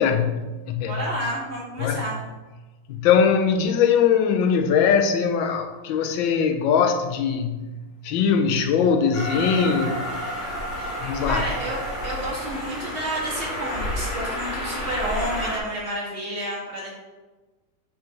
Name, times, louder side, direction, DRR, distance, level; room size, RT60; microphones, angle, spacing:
voice 1, 0.0-1.1 1.8-2.1 2.9-10.1 11.0-11.4, left 6 dB, 80° left, 1.4 m, -21 dB
voice 2, 0.8-2.2 11.3-16.9, right 1 dB, 35° right, 2.2 m, -30 dB
Train, 9.1-15.6, equal, 40° left, 1.7 m, -30 dB
7.6 x 4.1 x 4.5 m
omnidirectional pair, 2.1 m